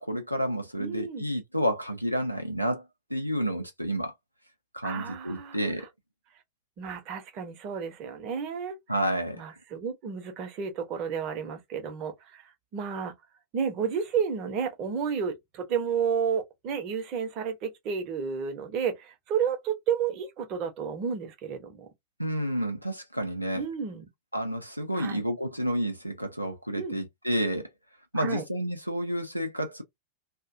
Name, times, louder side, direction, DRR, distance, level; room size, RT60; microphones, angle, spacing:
voice 1, 0.0-2.8 3.1-4.1 4.7-5.9 8.9-9.4 22.2-23.6 24.3-27.7 28.1-29.8, equal, 90° right, 0.4 m, -30 dB
voice 2, 0.8-1.3 4.8-5.9 6.8-8.8 9.4-13.1 13.5-21.9 23.6-24.1 24.9-25.2 26.7-27.0 28.1-28.4, right 7 dB, 40° right, 0.7 m, -31 dB
2.4 x 2.1 x 2.5 m
figure-of-eight pair, 90°, 0 cm